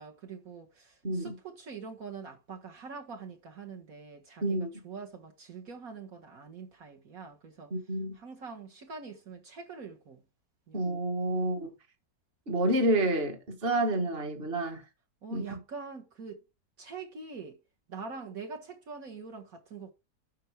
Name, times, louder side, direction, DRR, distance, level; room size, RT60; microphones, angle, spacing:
voice 1, 0.0-4.6 4.8-7.7 8.1-10.2 10.7-10.9 11.3-11.7 15.2-16.4 16.8-17.6 17.9-19.9, right 5 dB, 60° right, 2.0 m, -44 dB
voice 2, 1.0-1.4 4.4-4.7 7.7-8.2 10.7-11.7 12.5-14.8 15.3-15.6, right 1 dB, 40° right, 1.9 m, -29 dB
11.5 x 4.7 x 4.8 m
omnidirectional pair, 1.7 m